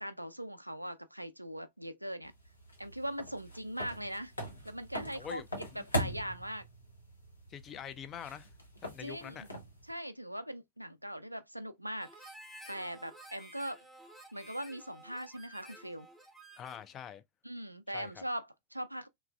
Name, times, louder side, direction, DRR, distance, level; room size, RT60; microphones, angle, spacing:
voice 1, 0.0-2.3 2.8-4.3 4.6-6.6 9.0-9.5 9.9-12.3 12.7-13.8 14.3-16.1 17.4-19.1, equal, 90° right, 0.3 m, -40 dB
sound 1, 2.2-9.9, equal, 80° left, 0.8 m, -41 dB
voice 2, 5.1-5.7 7.5-8.5 8.8-9.4 16.6-17.2 17.9-18.2, left 9 dB, 30° left, 0.4 m, -45 dB
Harmonica, 12.0-16.9, right 1 dB, ahead, 0.7 m, -53 dB
3.1 x 2.4 x 2.2 m
figure-of-eight pair, 90°, 0 cm